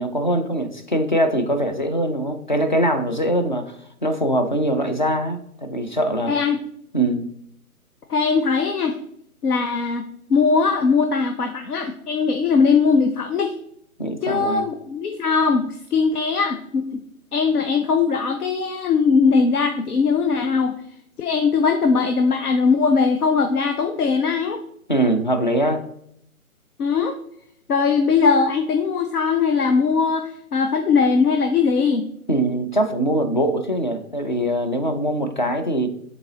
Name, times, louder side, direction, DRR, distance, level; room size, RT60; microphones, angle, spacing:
voice 1, 0.0-3.8 4.0-6.3 6.9-7.3 14.0-14.6 24.9-25.8 32.3-35.9, right 1 dB, 35° left, 7 dB, 0.4 m, -22 dB
voice 2, 6.3-6.6 8.1-9.0 9.4-13.5 14.2-16.9 17.3-20.8 21.2-24.6 26.8-27.2 27.7-32.1, left 5 dB, 85° left, 7 dB, 0.8 m, -20 dB
6.7 x 4.0 x 3.8 m, 0.71 s
figure-of-eight pair, 155°, 44 cm